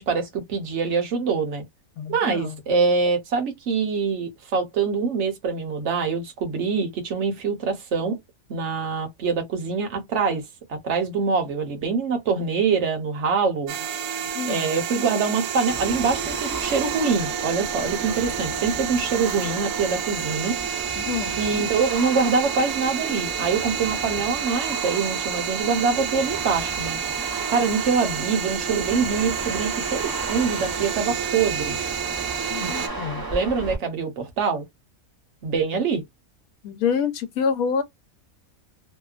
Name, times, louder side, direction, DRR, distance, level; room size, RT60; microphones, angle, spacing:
voice 1, 0.0-1.6 2.1-8.2 8.5-10.4 10.7-13.7 14.5-20.6 21.4-27.0 27.5-31.8 32.4-32.7 33.3-34.6 35.4-36.0, right 5 dB, 60° right, 1.0 m, -24 dB
voice 2, 2.0-2.5 14.3-14.7 21.0-21.4 32.5-33.2 36.6-37.8, left 6 dB, 85° left, 1.1 m, -27 dB
sound 1, 13.7-32.9, right 8 dB, 90° right, 1.0 m, -30 dB
sound 2, 15.7-33.8, right 3 dB, 20° right, 0.7 m, -34 dB
2.8 x 2.1 x 2.3 m
omnidirectional pair, 1.4 m